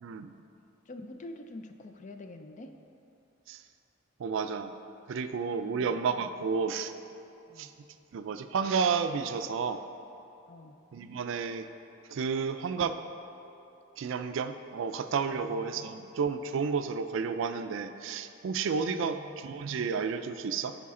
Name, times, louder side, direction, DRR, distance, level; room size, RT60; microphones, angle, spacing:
voice 1, 0.9-2.7 5.6-6.0 7.5-7.7 10.5-10.8 15.3-16.1 18.9-19.4, left 2 dB, 35° left, 6 dB, 0.4 m, -46 dB
voice 2, 4.2-4.7 5.1-6.9 7.6-7.7 8.1-9.8 10.9-11.7 12.1-13.0 14.0-20.7, right 5 dB, 65° right, 9 dB, 0.4 m, -31 dB
9.7 x 5.0 x 3.7 m, 2.8 s
head